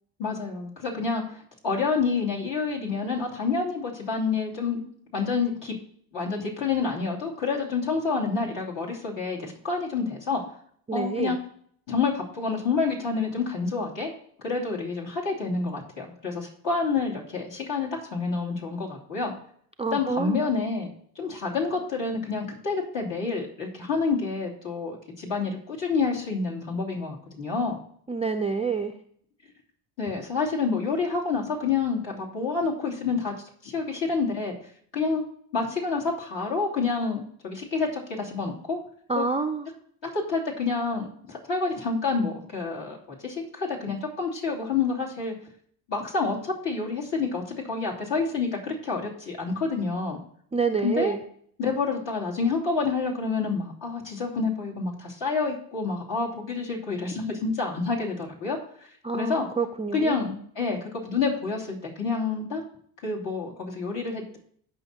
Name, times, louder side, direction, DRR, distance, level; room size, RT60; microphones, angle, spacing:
voice 1, 0.2-4.9 5.1-5.7 6.1-10.4 10.9-11.4 11.9-14.1 14.4-19.3 19.9-20.9 21.1-27.8 30.0-33.3 33.6-34.6 34.9-35.2 35.5-38.8 39.1-39.3 40.1-45.3 45.9-50.2 50.8-51.2 51.6-58.9 59.1-59.5 59.9-62.6 63.0-64.4, left 4 dB, 60° left, -3 dB, 2.8 m, -28 dB
voice 2, 10.9-11.4 19.8-20.4 28.1-28.9 39.1-39.7 50.5-51.2 59.0-60.1, right 5 dB, 15° right, 5 dB, 0.3 m, -27 dB
16.5 x 5.7 x 2.8 m, 0.63 s
supercardioid pair, 65°, 50 cm